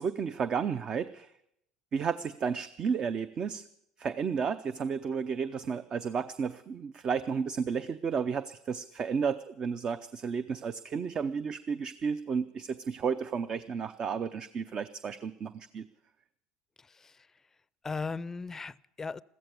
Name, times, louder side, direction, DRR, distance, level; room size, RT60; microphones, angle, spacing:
voice 1, 0.0-1.3 1.9-3.6 4.0-15.8, right 6 dB, 40° right, 13 dB, 0.7 m, -32 dB
voice 2, 16.8-17.3 17.8-19.2, left 4 dB, 20° left, 20 dB, 0.5 m, -38 dB
15.0 x 14.0 x 6.9 m, 0.78 s
supercardioid pair, 90°, 2 cm